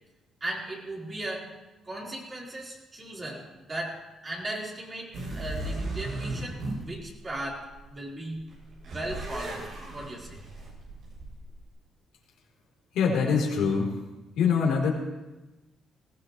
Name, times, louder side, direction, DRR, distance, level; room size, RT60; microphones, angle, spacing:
voice 1, 0.4-1.5 1.9-8.5 8.9-10.4, right 1 dB, 30° right, -4 dB, 4.5 m, -37 dB
sound 1, 5.1-7.9 8.3-11.7, right 2 dB, 65° right, 7.1 m, -36 dB
voice 2, 12.9-13.9 14.4-14.9, left 6 dB, 85° left, -1 dB, 3.8 m, -24 dB
20.0 x 16.5 x 3.3 m, 1.1 s
cardioid pair, 90°, 0 cm